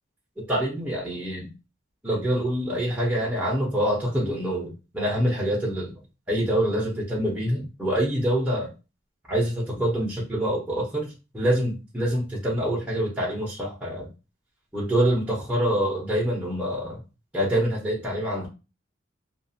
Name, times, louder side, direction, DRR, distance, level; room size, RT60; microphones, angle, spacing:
voice 1, 0.4-1.5 2.0-5.9 6.3-8.7 9.3-11.1 11.3-14.1 14.7-17.0 17.3-18.5, equal, 5° right, -5 dB, 0.7 m, -25 dB
2.4 x 2.3 x 2.6 m, 0.30 s
head